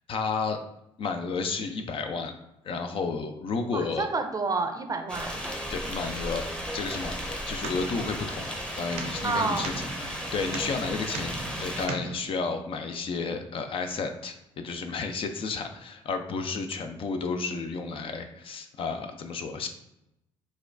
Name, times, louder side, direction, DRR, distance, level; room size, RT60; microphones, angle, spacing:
voice 1, 0.1-0.6 1.0-2.3 2.6-4.1 5.7-6.5 6.7-19.7, left 4 dB, 45° left, 6 dB, 0.4 m, -32 dB
voice 2, 3.7-5.4 9.2-9.8, right 3 dB, 30° right, 6 dB, 0.5 m, -29 dB
sound 1, 5.1-11.9, equal, 5° left, 0.7 m, -35 dB
sound 2, 7.2-12.2, right 3 dB, 65° right, 0.7 m, -39 dB
4.1 x 2.3 x 2.5 m, 0.84 s
hypercardioid pair, 55°, 12 cm